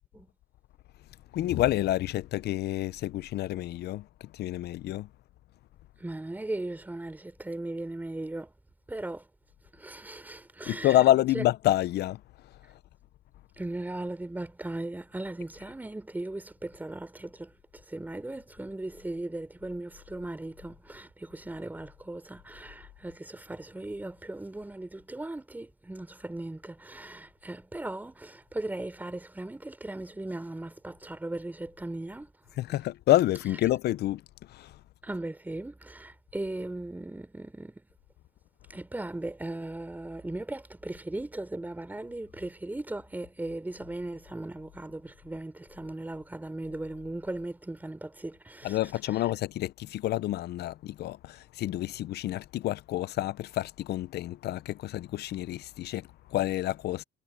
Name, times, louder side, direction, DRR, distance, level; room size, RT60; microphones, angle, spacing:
voice 1, 1.3-5.1 10.7-12.8 32.5-34.8 48.6-57.0, left 14 dB, 60° left, 0.7 m, -28 dB
voice 2, 6.0-8.5 8.9-9.3 9.7-11.0 11.3-11.4 13.6-32.3 35.0-37.8 38.7-48.8, right 2 dB, 10° right, 4.1 m, -38 dB
cardioid pair, 115°, 19 cm